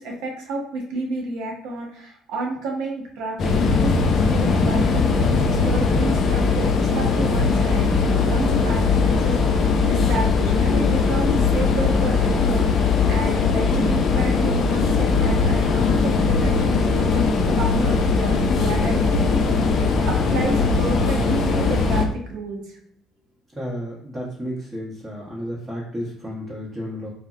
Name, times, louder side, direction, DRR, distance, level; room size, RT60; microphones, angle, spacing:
voice 1, 0.0-9.3 9.9-17.3 17.6-22.8, right 2 dB, 75° right, 0 dB, 0.7 m, -30 dB
sound 1, 3.4-22.0, left 4 dB, 55° left, 0.4 m, -20 dB
voice 2, 23.6-27.1, equal, 20° right, -6 dB, 0.8 m, -32 dB
2.7 x 2.0 x 2.4 m, 0.69 s
supercardioid pair, 75°, 0 cm